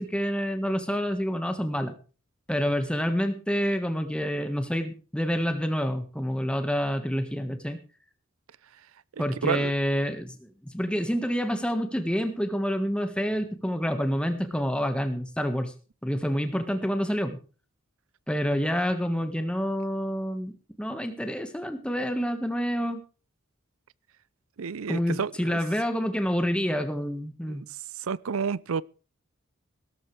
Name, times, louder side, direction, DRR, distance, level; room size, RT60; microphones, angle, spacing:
voice 1, 0.0-1.9 2.5-7.8 9.2-15.7 16.0-17.4 18.3-20.5 20.8-23.0 24.9-27.6, equal, 5° left, 1.5 m, -28 dB
voice 2, 24.6-25.6 27.5-27.7 28.1-28.8, right 6 dB, 90° right, 0.5 m, -29 dB
17.5 x 13.5 x 3.3 m
head